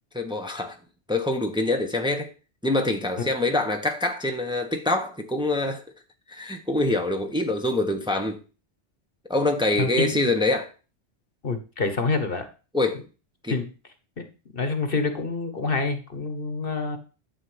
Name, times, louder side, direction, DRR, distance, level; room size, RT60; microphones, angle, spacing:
voice 1, 0.1-0.8 1.1-2.3 2.6-5.8 6.3-8.4 9.3-10.7 12.7-13.0 13.4-13.6, left 2 dB, 5° right, 1.1 m, -25 dB
voice 2, 9.8-10.2 11.4-12.5 13.5-13.7 14.2-14.3 14.5-17.0, left 3 dB, 50° left, 1.5 m, -27 dB
11.5 x 4.4 x 7.9 m
omnidirectional pair, 1.2 m